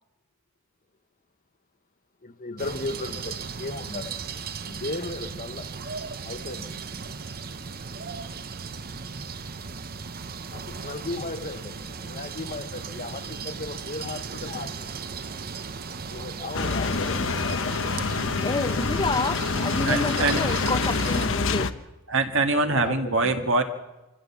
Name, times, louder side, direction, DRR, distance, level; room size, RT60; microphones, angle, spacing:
voice 1, 2.2-4.1 4.7-5.7 6.2-6.7 10.5-14.9 16.1-18.0 22.6-23.3, left 2 dB, 40° left, 1.1 m, -36 dB
sound 1, 2.6-21.3, right 5 dB, 45° right, 0.8 m, -36 dB
sound 2, 16.5-21.7, left 4 dB, 60° left, 0.9 m, -26 dB
voice 2, 18.4-21.7, left 3 dB, 20° left, 0.7 m, -29 dB
voice 3, 19.8-20.4 22.1-23.6, right 3 dB, 60° right, 1.8 m, -24 dB
25.5 x 14.5 x 7.2 m
head